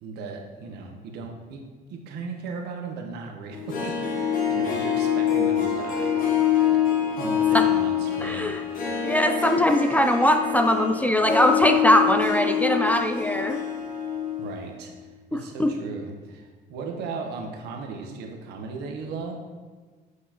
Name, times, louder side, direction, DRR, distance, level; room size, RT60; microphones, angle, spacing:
voice 1, 0.0-1.6 1.9-6.5 7.2-9.1 14.4-19.4, right 4 dB, 80° right, 2 dB, 1.0 m, -37 dB
Harp, 3.5-14.6 14.8-14.9, left 8 dB, 55° left, 1.0 m, -25 dB
voice 2, 8.2-8.6 9.0-13.6 15.3-15.8, equal, 10° left, 6 dB, 0.3 m, -21 dB
8.1 x 4.7 x 2.9 m, 1.4 s
cardioid pair, 110°, 17 cm